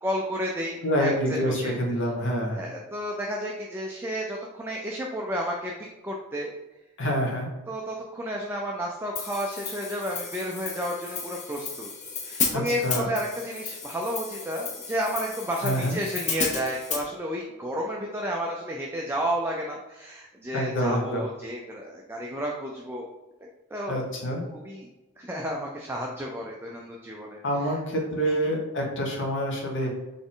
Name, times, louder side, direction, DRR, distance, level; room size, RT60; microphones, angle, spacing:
voice 1, 0.0-1.7 2.6-5.7 6.0-6.5 7.7-11.9 12.2-23.1 23.7-24.0 24.5-24.9 25.2-27.7 28.2-28.5, equal, 10° right, -1 dB, 0.4 m, -32 dB
voice 2, 0.8-2.6 7.0-7.5 12.5-13.1 15.6-16.0 20.5-21.2 23.9-24.4 27.4-29.9, equal, 55° left, 0 dB, 1.0 m, -27 dB
Hi-hat, 9.2-17.1, left 5 dB, 30° left, 0.6 m, -33 dB
4.2 x 3.4 x 3.7 m, 1.1 s
head